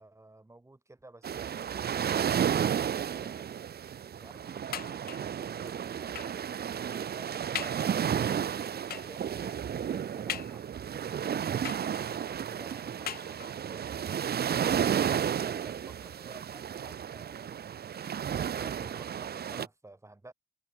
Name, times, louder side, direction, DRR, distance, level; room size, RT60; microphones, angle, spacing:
voice 1, 0.0-3.7 4.1-10.7 10.9-14.0 14.8-20.3, right 2 dB, 15° right, 6.1 m, -53 dB
sound 1, 1.2-19.7, right 8 dB, 55° right, 1.6 m, -32 dB
sound 2, 4.7-5.4 6.2-6.5 7.0-7.1 7.6-7.9 8.9-9.2 10.3-10.9 11.7-12.3 13.1-13.7 14.6-14.7 15.0-15.1, left 11 dB, 50° left, 0.5 m, -40 dB
cardioid pair, 90°, 20 cm